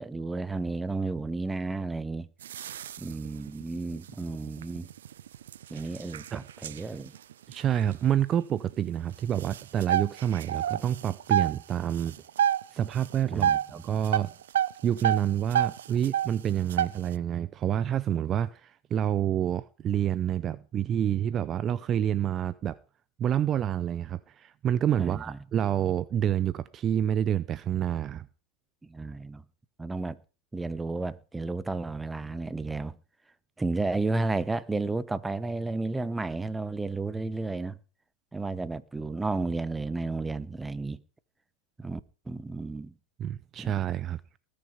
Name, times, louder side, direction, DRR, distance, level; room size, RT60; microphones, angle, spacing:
voice 1, 0.0-2.3 3.0-4.9 5.7-7.1 13.3-13.8 25.0-25.4 28.8-29.4 29.8-30.2 30.5-32.9 33.6-37.8 38.3-41.0 41.8-42.0 42.3-42.9 43.6-43.7, right 3 dB, 10° right, 0.9 m, -32 dB
sound 1, 2.4-8.5 8.9-9.0 9.3-11.6 11.9-12.6 12.9-13.7 14.0-16.4 16.7-17.1, right 10 dB, 80° right, 0.5 m, -28 dB
voice 2, 7.5-12.2 12.7-14.3 14.8-22.8 23.2-28.3 43.2-44.2, right 10 dB, 35° right, 0.5 m, -28 dB
19.5 x 6.8 x 5.2 m
hypercardioid pair, 100°, 0 cm